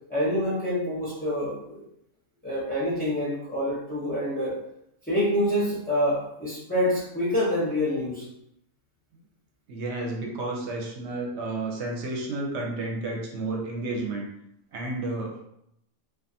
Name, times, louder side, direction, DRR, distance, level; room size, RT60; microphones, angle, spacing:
voice 1, 0.1-1.9 2.4-4.6 5.0-8.3, equal, 15° left, -10 dB, 0.3 m, -26 dB
voice 2, 9.7-14.3 14.7-15.4, right 2 dB, 65° right, 0 dB, 0.8 m, -31 dB
2.4 x 2.3 x 2.7 m, 0.77 s
omnidirectional pair, 1.4 m